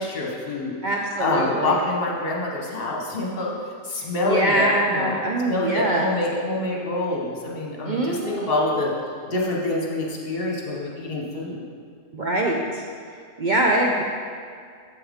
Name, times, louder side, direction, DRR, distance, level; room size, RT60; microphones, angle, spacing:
voice 1, 0.0-0.7 1.2-3.5 3.8-5.1 5.5-8.9 9.3-11.6, left 2 dB, 50° left, -3 dB, 1.3 m, -26 dB
voice 2, 0.8-1.8 4.3-6.1 7.8-8.9 12.1-12.8 13.4-14.0, right 1 dB, 50° right, -1 dB, 0.6 m, -23 dB
7.7 x 7.2 x 3.6 m, 2.2 s
omnidirectional pair, 1.3 m